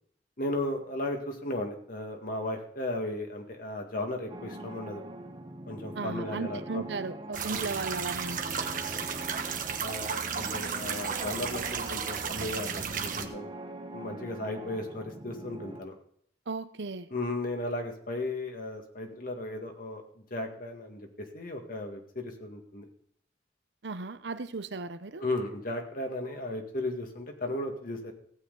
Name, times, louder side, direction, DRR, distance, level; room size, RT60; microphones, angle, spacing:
voice 1, 0.4-5.0 5.7-6.9 7.5-7.7 8.6-8.9 9.2-13.5 13.9-15.9 17.1-22.9 25.2-28.1, left 1 dB, 55° left, 3 dB, 2.0 m, -35 dB
sound 1, 4.3-15.8, right 1 dB, 30° right, 1.0 m, -43 dB
voice 2, 5.9-8.6 16.5-17.1 23.8-25.2, right 4 dB, 85° right, 12 dB, 0.8 m, -36 dB
sound 2, 7.3-13.3, right 6 dB, 50° right, 1.2 m, -34 dB
16.0 x 8.9 x 4.0 m, 0.65 s
head